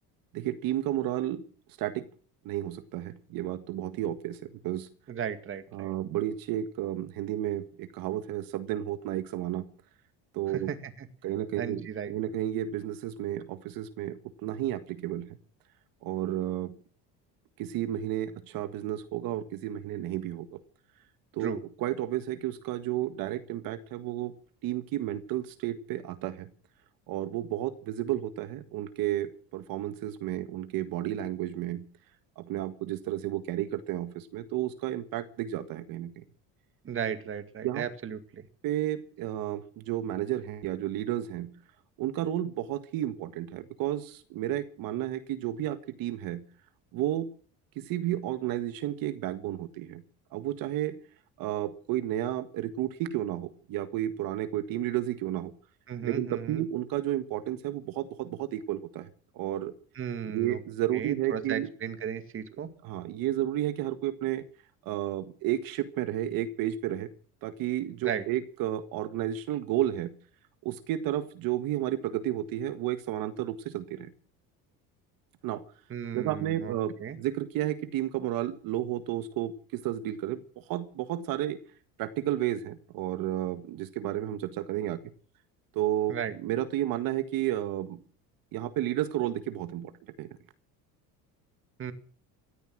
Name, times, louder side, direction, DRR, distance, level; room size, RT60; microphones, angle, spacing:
voice 1, 0.3-1.4 1.8-2.0 2.5-4.9 5.7-9.7 10.3-10.7 11.2-15.4 16.0-16.7 17.6-20.6 21.3-21.5 21.8-24.3 24.6-26.5 27.1-31.9 32.4-36.2 37.6-37.8 38.6-41.6 42.0-46.4 46.9-47.3 47.8-50.0 50.3-51.0 51.4-55.6 56.0-59.1 59.3-59.7 60.3-61.7 62.8-64.4 64.8-67.1 67.4-70.1 70.7-74.1 75.4-75.6 76.1-81.6 82.0-85.0 85.7-86.1 86.4-88.0 88.5-89.9 90.2-90.3, right 12 dB, 65° right, 10 dB, 1.7 m, -32 dB
voice 2, 5.1-5.9 10.5-11.1 11.6-12.1 21.4-21.6 36.8-38.5 55.9-56.7 60.0-60.6 60.9-62.7 68.0-68.2 75.9-76.7 77.0-77.2 86.1-86.3 91.8-91.9, right 8 dB, 35° right, 9 dB, 2.2 m, -35 dB
16.5 x 13.5 x 6.2 m, 0.43 s
cardioid pair, 130°, 37 cm